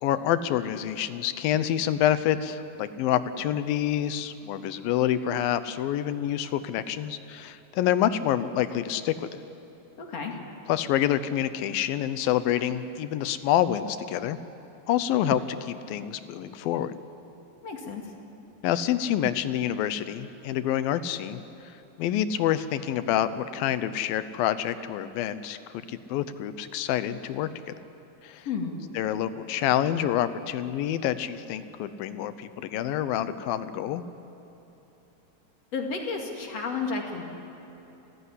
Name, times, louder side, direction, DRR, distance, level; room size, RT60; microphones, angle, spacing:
voice 1, 0.0-9.4 10.7-14.4 14.9-16.9 18.6-21.4 22.0-27.8 28.2-28.5 28.9-34.0, left 11 dB, 85° left, 12 dB, 2.6 m, -27 dB
voice 2, 10.0-10.3 17.6-18.0 28.4-28.8 35.7-37.3, left 4 dB, 50° left, 1 dB, 3.2 m, -32 dB
29.5 x 15.0 x 9.9 m, 3.0 s
omnidirectional pair, 4.1 m